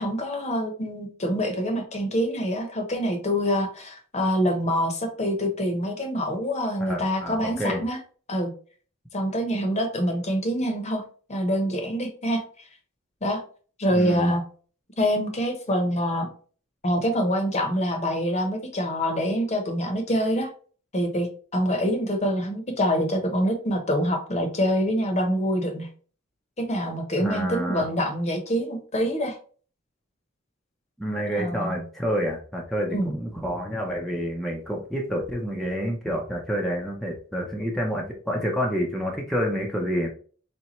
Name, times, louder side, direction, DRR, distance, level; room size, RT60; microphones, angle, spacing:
voice 1, 0.0-8.0 8.3-8.5 9.1-11.0 11.3-12.4 13.2-13.4 13.8-14.4 15.0-16.3 16.8-20.5 20.9-25.9 26.6-29.4 31.3-31.8 32.9-33.2, equal, 35° left, 5 dB, 0.9 m, -25 dB
voice 2, 6.8-7.8 13.9-14.3 27.2-27.8 31.0-40.1, equal, ahead, -2 dB, 0.6 m, -28 dB
4.3 x 3.3 x 3.0 m, 0.41 s
head